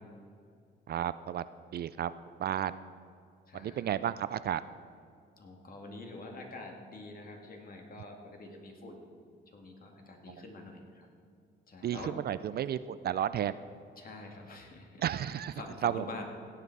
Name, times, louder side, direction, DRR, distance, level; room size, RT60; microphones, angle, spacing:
voice 1, 0.9-1.4 1.7-2.1 2.4-2.7 3.5-4.6 11.8-13.6 15.0-15.5 15.8-16.0, right 10 dB, 55° right, 15 dB, 0.4 m, -32 dB
voice 2, 3.5-3.9 5.4-9.1 9.5-11.1 11.7-12.1 14.0-16.3, left 2 dB, 45° left, 2 dB, 2.3 m, -46 dB
16.5 x 8.2 x 4.7 m, 2.3 s
cardioid pair, 90°, 20 cm